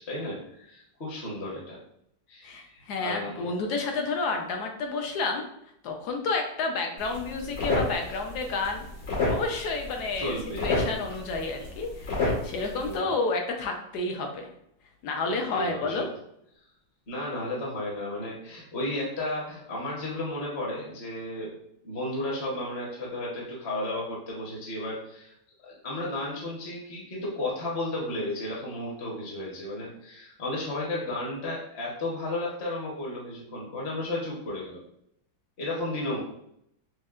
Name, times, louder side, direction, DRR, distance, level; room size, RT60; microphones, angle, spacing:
voice 1, 0.1-1.8 2.3-3.5 10.2-10.6 12.8-13.1 15.3-16.0 17.1-21.5 21.8-25.3 25.6-34.8 35.6-36.2, left 1 dB, 45° left, -4 dB, 0.9 m, -33 dB
voice 2, 2.4-5.5 5.8-8.8 9.1-10.3 10.6-14.5 15.0-16.1, left 3 dB, 70° left, 3 dB, 1.0 m, -30 dB
sound 1, 7.0-13.0, left 2 dB, 85° left, 2.3 m, -31 dB
6.3 x 2.1 x 2.4 m, 0.74 s
omnidirectional pair, 2.1 m